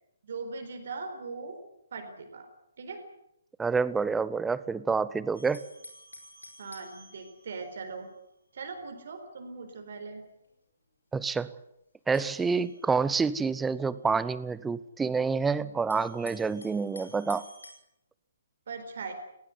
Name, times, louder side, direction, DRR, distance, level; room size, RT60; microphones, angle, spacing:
voice 1, 0.2-1.6 1.9-2.5 2.8-3.0 6.6-8.1 8.5-10.2 18.7-19.1, right 4 dB, 55° right, 5 dB, 4.4 m, -40 dB
voice 2, 3.6-5.6 11.1-11.5 12.1-17.4, right 5 dB, 10° right, 17 dB, 0.8 m, -28 dB
sound 1, 5.3-8.3 8.7-8.8 9.5-10.5 12.1-14.1 14.8-14.9 15.9-17.7, left 1 dB, 80° left, 4.9 m, -51 dB
19.5 x 18.5 x 9.8 m, 0.79 s
figure-of-eight pair, 130°, 0 cm